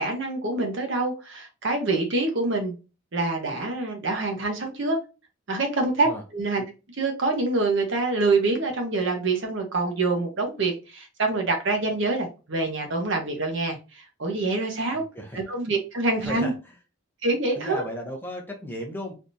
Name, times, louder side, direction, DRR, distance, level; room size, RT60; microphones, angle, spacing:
voice 1, 0.0-2.7 3.1-5.0 5.5-6.6 7.0-15.0 15.3-16.5 17.2-17.8, right 3 dB, 55° right, 0.9 m, -26 dB
voice 2, 14.9-15.4 16.2-16.7 17.5-19.1, left 1 dB, 10° left, 0.7 m, -35 dB
3.4 x 2.9 x 2.6 m
head